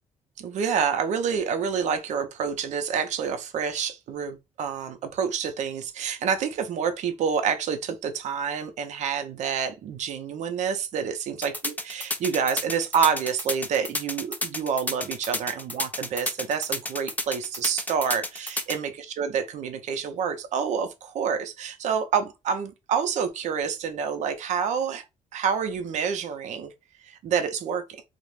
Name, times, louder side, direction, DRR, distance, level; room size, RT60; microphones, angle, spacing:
voice 1, 0.4-18.9 19.2-25.0 25.3-26.7 27.0-28.0, right 7 dB, 65° right, 0.6 m, -28 dB
sound 1, 11.4-18.8, left 2 dB, 10° left, 0.4 m, -30 dB
2.4 x 2.1 x 3.1 m
cardioid pair, 90°, 13 cm